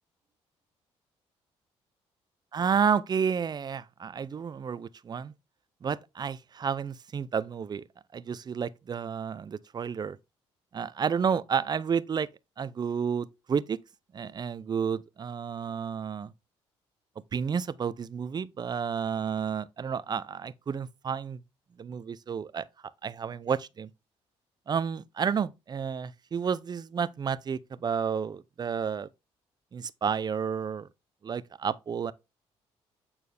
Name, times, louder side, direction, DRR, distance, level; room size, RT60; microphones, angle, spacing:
voice 1, 2.5-5.3 5.8-7.8 8.1-10.2 10.7-12.3 12.6-13.8 14.1-16.3 17.3-21.4 21.8-22.7 23.0-23.9 24.7-29.1 29.7-30.9 31.2-32.1, right 6 dB, 40° right, 0.5 m, -31 dB
8.5 x 4.4 x 3.3 m
supercardioid pair, 70°, 11 cm